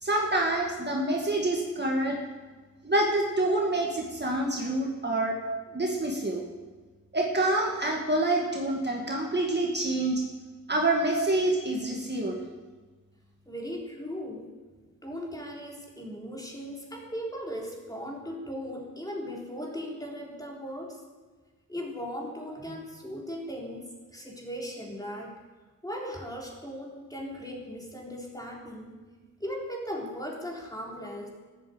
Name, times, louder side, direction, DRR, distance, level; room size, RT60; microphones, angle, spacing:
voice 1, 0.0-2.2 2.8-5.4 5.7-6.5 7.1-10.2 10.7-12.5, right 1 dB, 35° right, 0 dB, 1.9 m, -27 dB
voice 2, 13.5-14.5 15.0-21.0 21.7-25.3 25.8-28.9 29.4-31.3, equal, 10° left, -2 dB, 3.7 m, -38 dB
13.5 x 9.2 x 7.9 m, 1.3 s
wide cardioid pair, 85°, 32 cm